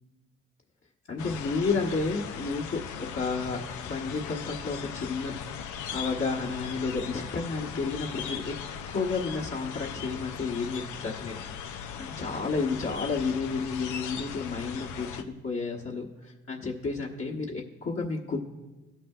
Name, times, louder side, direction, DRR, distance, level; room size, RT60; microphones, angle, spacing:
voice 1, 1.1-5.3 5.9-8.6 8.9-18.4, left 4 dB, 45° left, -3 dB, 1.4 m, -31 dB
sound 1, 1.2-15.2, left 8 dB, 80° left, 0.6 m, -38 dB
18.0 x 6.1 x 2.4 m, 1.3 s
supercardioid pair, 45°, 30 cm